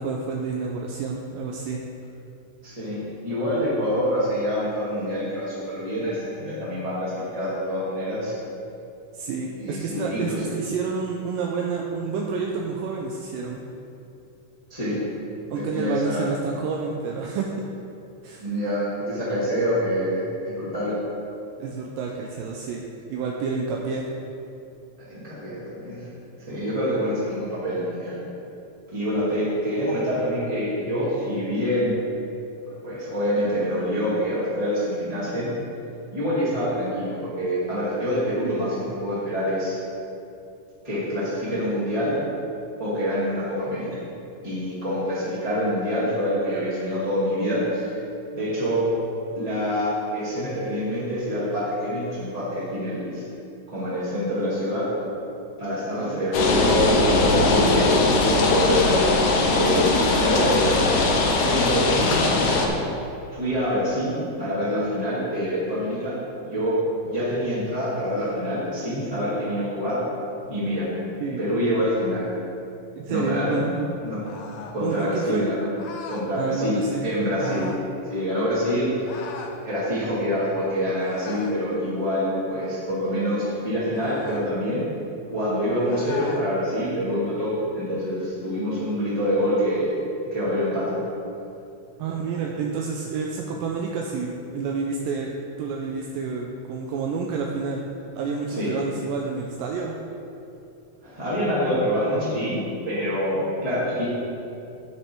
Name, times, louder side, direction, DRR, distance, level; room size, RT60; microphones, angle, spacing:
voice 1, 0.0-1.8 9.1-13.6 15.5-17.5 18.2-18.5 21.6-22.8 23.1-24.1 56.0-56.2 71.2-71.4 73.0-73.9 74.8-75.4 76.4-77.0 77.4-77.7 92.0-95.3 95.6-97.8 98.1-100.0, right 5 dB, 80° right, 0 dB, 2.2 m, -29 dB
voice 2, 2.6-8.3 9.6-10.4 14.7-15.0 15.5-16.3 18.4-21.0 25.0-26.1 26.5-28.2 28.9-32.0 32.8-35.5 36.1-39.8 40.8-42.1 42.8-43.9 44.4-47.9 48.3-48.9 49.3-53.2 53.7-54.9 55.6-58.8 59.2-59.8 60.2-61.0 61.4-62.7 63.3-66.1 66.4-66.8 67.0-70.0 70.5-70.9 71.4-72.3 73.1-73.6 74.0-74.2 74.7-75.7 76.1-77.7 78.1-78.9 79.6-84.8 85.3-89.9 90.3-91.0 98.5-98.7 101.0-102.6 102.8-104.0, equal, 15° right, -11 dB, 1.7 m, -26 dB
sound 1, 56.3-62.7, left 3 dB, 65° left, 2.0 m, -20 dB
sound 2, 74.2-74.8 75.8-76.3 77.4-77.9 79.1-79.6 81.0-81.6 83.9-84.5 85.9-86.5, left 4 dB, 90° left, 1.6 m, -38 dB
8.8 x 8.6 x 4.6 m, 2.8 s
omnidirectional pair, 4.2 m